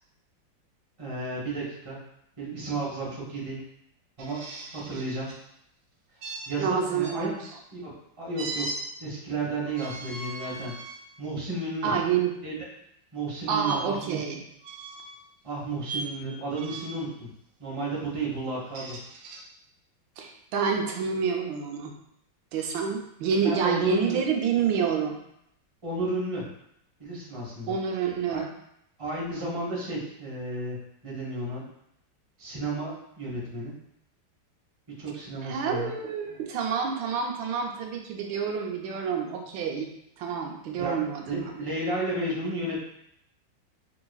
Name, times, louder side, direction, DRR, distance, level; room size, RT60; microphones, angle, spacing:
voice 1, 1.0-2.0 2.4-3.6 4.2-4.4 4.7-5.3 6.5-7.3 7.7-7.9 8.2-8.6 9.0-10.7 11.2-11.9 12.4-12.5 13.1-14.2 15.4-17.3 17.6-19.0 23.4-24.2 25.8-26.4 27.0-27.8 28.3-28.4 29.0-30.8 31.0-31.6 32.4-33.7 35.0-35.9 40.8-42.9, right 2 dB, 20° right, -5 dB, 0.9 m, -32 dB
sound 1, 4.2-5.4 6.2-7.2 8.4-8.8 9.6-11.0 11.6-11.8 13.6-13.8 14.6-15.2 15.8-16.1 16.5-17.1 18.5-19.4, right 2 dB, 70° right, 1.1 m, -39 dB
voice 2, 6.6-7.4 11.8-12.3 13.5-14.4 20.2-21.9 22.5-25.2 27.7-28.5 35.4-39.9 40.2-41.5, right 6 dB, 85° right, 2 dB, 1.4 m, -28 dB
4.8 x 3.2 x 2.3 m, 0.76 s
omnidirectional pair, 2.1 m